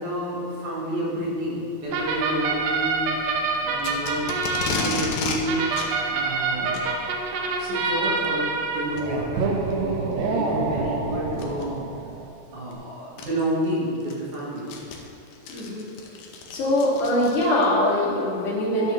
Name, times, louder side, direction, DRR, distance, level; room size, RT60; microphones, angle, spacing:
voice 1, 0.0-3.1 3.6-4.3 4.7-5.8 6.1-6.9 7.6-11.8 12.5-14.8, equal, 60° right, -8 dB, 3.0 m, -30 dB
sound 1, 1.9-12.3, right 4 dB, 75° right, 2.3 m, -27 dB
Packing tape duct tape, 3.8-5.4 5.7-5.9 6.6-6.9 8.0-8.3 9.0-9.1 9.7-9.8 11.3-11.6 12.7-12.8 13.2-13.3 13.8-17.7, left 4 dB, 80° left, 2.6 m, -32 dB
voice 2, 15.5-15.9 16.5-18.9, left 1 dB, 60° left, -9 dB, 3.6 m, -22 dB
12.0 x 6.5 x 3.2 m, 2.5 s
omnidirectional pair, 4.2 m